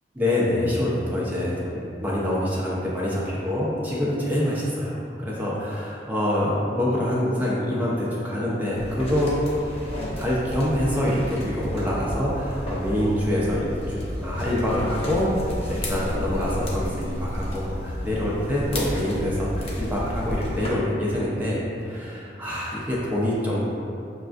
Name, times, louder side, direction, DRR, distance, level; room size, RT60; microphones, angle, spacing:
voice 1, 0.2-9.3 10.2-21.6 21.8-23.7, left 1 dB, 10° right, -6 dB, 0.4 m, -25 dB
sound 1, 8.7-20.7, equal, 35° left, 0.6 m, -32 dB
5.8 x 2.4 x 2.4 m, 2.6 s
head